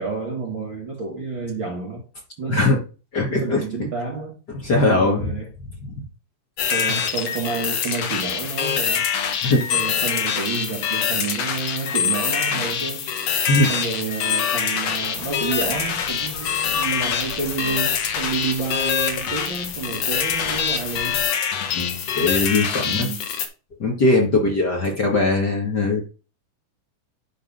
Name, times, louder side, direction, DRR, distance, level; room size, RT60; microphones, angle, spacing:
voice 1, 0.0-2.0 2.4-2.7 3.3-4.3 4.8-5.5 6.7-9.1 9.7-13.1 13.7-21.2 22.8-23.2 24.2-24.5, right 4 dB, 45° right, 1.7 m, -29 dB
voice 2, 2.5-2.8 3.1-3.6 4.5-5.3 9.4-9.7 13.5-13.7 21.7-23.1 23.8-26.0, left 2 dB, 40° left, 1.6 m, -20 dB
sound 1, 6.6-23.5, left 7 dB, 60° left, 1.9 m, -24 dB
sound 2, 15.1-21.3, left 4 dB, 80° left, 4.9 m, -41 dB
11.5 x 4.0 x 5.3 m
omnidirectional pair, 4.2 m